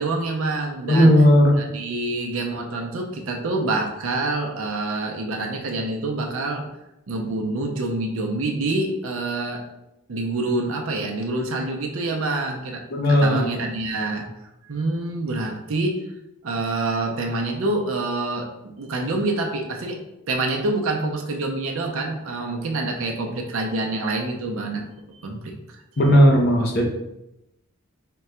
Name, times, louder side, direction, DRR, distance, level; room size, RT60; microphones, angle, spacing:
voice 1, 0.0-1.3 1.6-6.7 7.1-9.6 10.1-12.8 13.1-14.3 14.6-16.0 16.4-20.0 20.3-24.8 25.2-25.5, right 2 dB, 65° right, 1 dB, 0.5 m, -26 dB
voice 2, 0.9-1.6 12.9-13.5 26.0-26.8, equal, 45° left, 0 dB, 0.6 m, -15 dB
3.7 x 2.2 x 4.3 m, 0.88 s
head